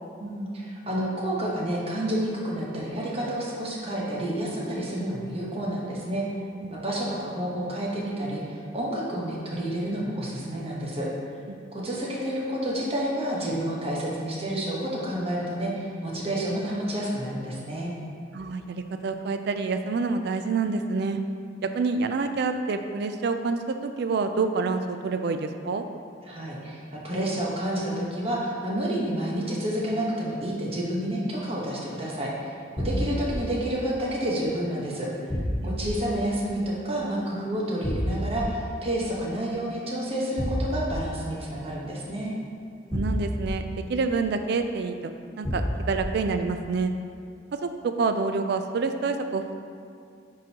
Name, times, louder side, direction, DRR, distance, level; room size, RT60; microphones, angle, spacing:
voice 1, 0.2-6.2 6.7-11.1 11.7-17.9 26.3-35.1 35.6-42.3, right 1 dB, 35° right, -4 dB, 1.1 m, -29 dB
voice 2, 6.6-7.0 11.5-11.9 18.3-21.2 21.6-25.8 32.9-33.1 35.6-36.0 42.9-43.6 43.9-45.1 45.4-46.9 47.5-49.6, right 4 dB, 60° right, 7 dB, 0.4 m, -28 dB
sound 1, 32.8-33.3 35.3-35.9 37.8-38.4 40.4-41.0 42.9-43.5 45.4-46.0, equal, 15° left, 0.6 m, -28 dB
9.6 x 3.8 x 2.9 m, 2.4 s
head